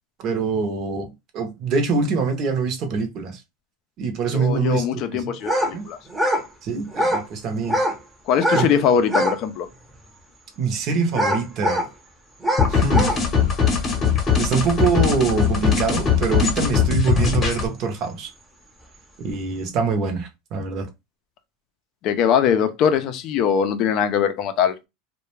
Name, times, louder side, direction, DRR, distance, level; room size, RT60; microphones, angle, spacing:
voice 1, 0.2-3.4 4.0-5.2 5.7-5.9 6.6-7.8 8.5-8.7 10.6-11.8 12.7-13.2 14.4-18.3 19.2-20.9, right 5 dB, 45° right, 0.7 m, -24 dB
voice 2, 4.3-6.0 8.3-9.7 22.0-24.7, left 8 dB, 50° left, 0.4 m, -21 dB
sound 1, 5.4-5.7 6.1-6.5 6.9-7.3 7.6-8.0 8.3-8.7 9.0-9.4 9.9-10.0 11.1-11.9 12.4-13.2, equal, 5° right, 0.7 m, -22 dB
sound 2, 12.6-17.7, left 6 dB, 30° left, 0.8 m, -20 dB
2.3 x 2.1 x 3.0 m
supercardioid pair, 130°, 0 cm